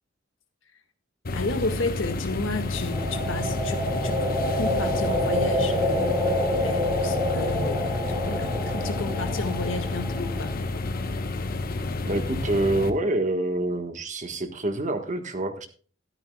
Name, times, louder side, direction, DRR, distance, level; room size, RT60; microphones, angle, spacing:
sound 1, 1.2-12.9, left 2 dB, 50° left, 1.0 m, -30 dB
voice 1, 1.3-6.3 6.6-10.6, left 2 dB, 90° left, 1.7 m, -32 dB
sound 2, 2.8-10.8, left 1 dB, 10° right, 2.6 m, -27 dB
voice 2, 12.0-15.7, right 1 dB, 40° right, 1.4 m, -26 dB
13.0 x 12.5 x 2.3 m
head